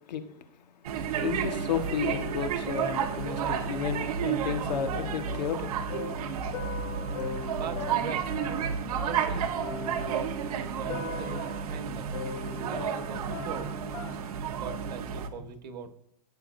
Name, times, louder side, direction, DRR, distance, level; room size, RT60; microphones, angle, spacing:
sound 1, 0.8-15.3, right 7 dB, 60° right, 1.2 m, -32 dB
voice 1, 1.2-5.7, left 8 dB, 85° left, 1.5 m, -32 dB
sound 2, 2.0-4.3 4.6-14.4, left 6 dB, 70° left, 2.3 m, -41 dB
voice 2, 7.6-8.2 9.0-9.5 10.0-12.1 12.7-16.0, right 5 dB, 90° right, 1.6 m, -41 dB
17.0 x 7.2 x 2.7 m
supercardioid pair, 165°, 21 cm